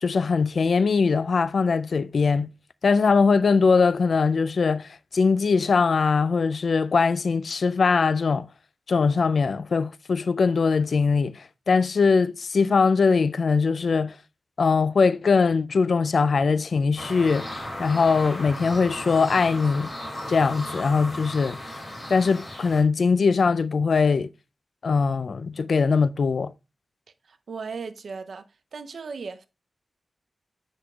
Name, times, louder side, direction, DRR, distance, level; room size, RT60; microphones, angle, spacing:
voice 1, 0.0-2.5 2.8-8.5 8.9-14.1 14.6-17.4 17.8-19.9 20.3-21.6 22.1-24.3 24.8-26.5, left 4 dB, 70° left, 0.3 m, -21 dB
sound 1, 17.0-22.8, left 1 dB, 20° left, 3.3 m, -35 dB
voice 2, 27.2-29.5, right 5 dB, 85° right, 0.5 m, -37 dB
7.9 x 6.0 x 2.3 m
wide cardioid pair, 75°, 0 cm